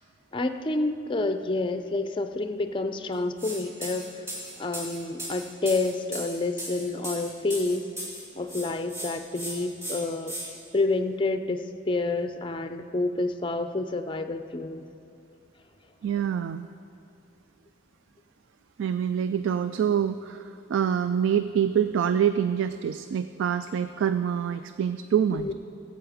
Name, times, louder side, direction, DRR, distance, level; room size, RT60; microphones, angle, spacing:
voice 1, 0.3-4.2 4.6-7.8 8.3-10.3 10.7-14.9 25.3-25.5, left 2 dB, 25° left, 8 dB, 0.5 m, -29 dB
sound 1, 3.4-3.6 3.8-8.2 8.5-9.1 9.3-9.5 9.8-10.4, equal, 15° right, 3.3 m, -36 dB
voice 2, 16.0-16.7 18.8-25.5, right 8 dB, 75° right, 11 dB, 0.3 m, -26 dB
15.0 x 8.0 x 5.0 m, 2.5 s
head